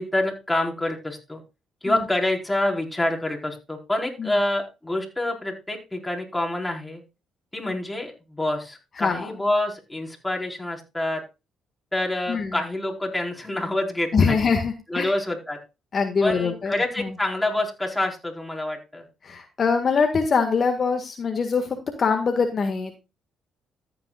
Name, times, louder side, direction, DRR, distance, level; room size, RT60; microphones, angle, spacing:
voice 1, 0.0-1.4 1.8-7.0 7.5-11.2 11.9-14.5 14.9-15.6 16.2-19.0, left 1 dB, 10° left, 1 dB, 4.5 m, -27 dB
voice 2, 9.0-9.3 12.3-12.6 14.1-15.1 15.9-17.1 19.2-23.0, left 5 dB, 50° left, 5 dB, 1.8 m, -23 dB
14.0 x 9.0 x 2.4 m, 0.27 s
supercardioid pair, 60°, 0 cm